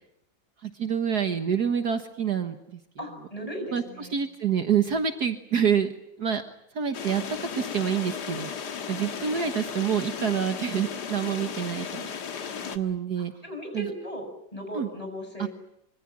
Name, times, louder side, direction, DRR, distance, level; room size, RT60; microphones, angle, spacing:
voice 1, 0.6-2.8 3.7-5.9 6.2-6.4 6.7-8.5 8.9-12.1 12.6-13.3 13.7-13.9 14.7-14.9 15.4-15.5, right 8 dB, 60° right, 7 dB, 1.8 m, -27 dB
voice 2, 3.0-4.2 13.2-15.5, equal, 20° left, 5 dB, 6.9 m, -37 dB
sound 1, 6.9-12.8, left 7 dB, 65° left, 2.1 m, -35 dB
25.5 x 24.0 x 8.6 m, 0.77 s
omnidirectional pair, 2.0 m